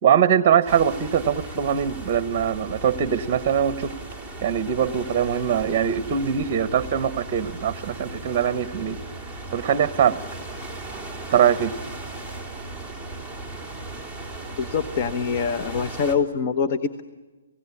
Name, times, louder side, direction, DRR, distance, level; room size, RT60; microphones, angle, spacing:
voice 1, 0.0-3.9 4.4-9.0 9.5-10.2 11.3-11.8, right 8 dB, 30° right, 13 dB, 1.0 m, -22 dB
sound 1, 0.7-16.2, right 2 dB, 15° left, 3.6 m, -37 dB
voice 2, 14.6-17.0, left 6 dB, 40° left, 8 dB, 1.1 m, -24 dB
29.5 x 17.0 x 9.9 m, 1.3 s
hypercardioid pair, 155°, 0 cm